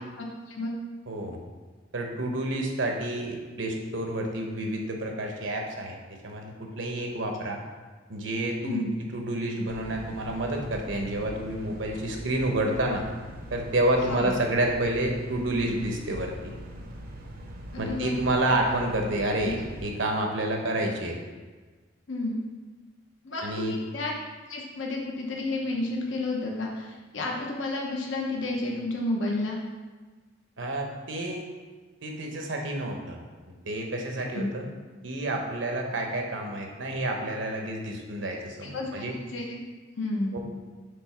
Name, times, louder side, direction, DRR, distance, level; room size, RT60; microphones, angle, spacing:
voice 1, 0.2-0.7 8.6-8.9 14.1-14.3 17.7-18.2 22.1-22.4 23.2-24.1 24.5-29.6 34.3-34.4 38.6-39.6 40.0-40.4, left 2 dB, 80° left, -1 dB, 0.9 m, -31 dB
voice 2, 1.1-1.4 1.9-6.0 6.2-7.6 8.1-8.9 9.1-13.0 13.5-16.5 17.8-21.2 23.4-23.7 30.6-31.4 32.0-34.6 35.0-39.1 40.3-40.4, right 1 dB, 80° right, 2 dB, 1.0 m, -29 dB
sound 1, 9.7-19.9, equal, 50° right, 0.7 m, -42 dB
5.2 x 3.6 x 5.8 m, 1.4 s
head